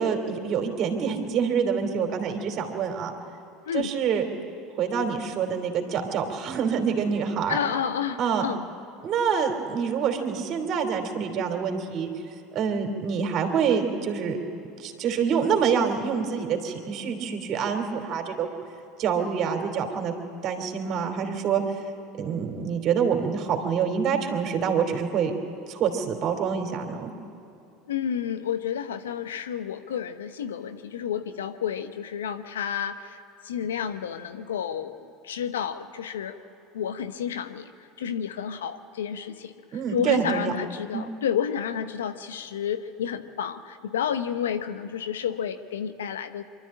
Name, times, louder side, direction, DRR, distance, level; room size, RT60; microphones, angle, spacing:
voice 1, 0.0-3.1 3.7-4.2 4.8-7.6 8.2-8.4 9.0-12.1 12.5-14.4 14.8-18.5 19.0-20.1 20.4-21.6 22.2-25.3 25.7-27.1 39.7-40.5 40.9-41.0, right 7 dB, 50° right, 4 dB, 3.0 m, -26 dB
voice 2, 7.5-8.6 27.9-35.0 35.2-36.4 36.7-37.7 38.0-39.5 39.9-46.4, left 8 dB, 80° left, 10 dB, 1.0 m, -30 dB
24.5 x 13.0 x 8.7 m, 2.8 s
hypercardioid pair, 80°, 0 cm